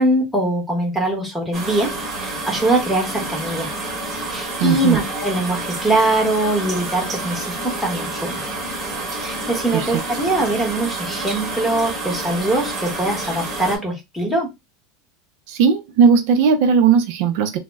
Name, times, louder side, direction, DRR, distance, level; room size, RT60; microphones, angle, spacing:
voice 1, 0.0-1.9 2.2-3.7 4.3-8.5 9.2-14.5, right 1 dB, 5° left, 1.0 m, -22 dB
sound 1, 1.5-13.8, right 2 dB, 25° right, 1.1 m, -29 dB
voice 2, 4.6-5.0 9.7-10.0 15.5-17.6, right 6 dB, 65° right, 0.5 m, -17 dB
2.1 x 2.0 x 3.3 m
supercardioid pair, 135°, 0 cm